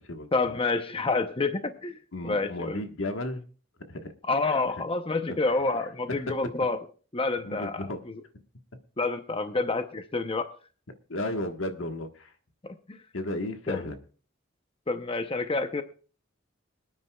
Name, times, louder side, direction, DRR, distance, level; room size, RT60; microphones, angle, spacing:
voice 1, 0.3-2.8 4.3-6.8 7.1-8.2 9.0-10.5 12.6-13.0 13.7-13.9 14.9-15.8, left 3 dB, 30° left, 8 dB, 0.7 m, -28 dB
voice 2, 2.1-3.4 3.9-4.1 4.5-4.6 5.3-5.4 5.7-6.2 7.4-8.0 11.1-12.3 13.1-14.0, left 1 dB, 75° left, 6 dB, 1.4 m, -34 dB
25.0 x 9.5 x 2.3 m, 0.38 s
head